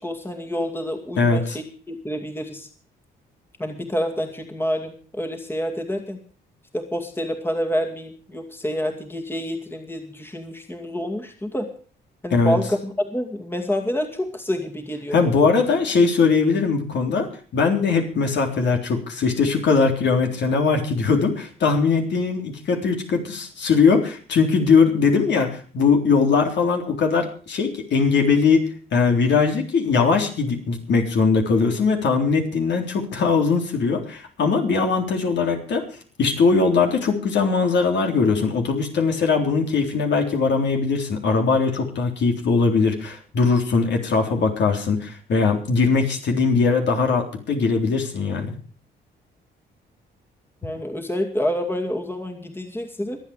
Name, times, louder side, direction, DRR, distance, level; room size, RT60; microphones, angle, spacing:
voice 1, 0.0-2.7 3.6-6.2 6.7-11.7 12.2-15.5 50.6-53.2, equal, 10° left, 4 dB, 2.4 m, -28 dB
voice 2, 1.2-1.6 12.3-12.6 15.1-35.8 36.2-48.6, left 4 dB, 65° left, 3 dB, 3.7 m, -20 dB
24.5 x 8.4 x 5.0 m, 0.42 s
cardioid pair, 90°, 20 cm